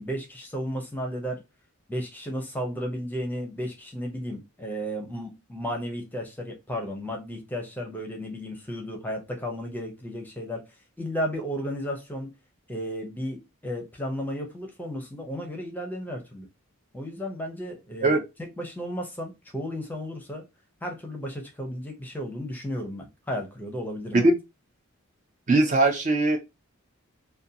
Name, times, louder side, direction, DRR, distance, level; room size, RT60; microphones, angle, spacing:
voice 1, 0.0-1.4 1.9-10.6 11.0-12.3 12.7-16.5 16.9-20.4 20.8-24.3, equal, 10° left, 0.6 m, -34 dB
voice 2, 25.5-26.4, right 2 dB, 35° right, 0.4 m, -20 dB
2.6 x 2.2 x 2.6 m
head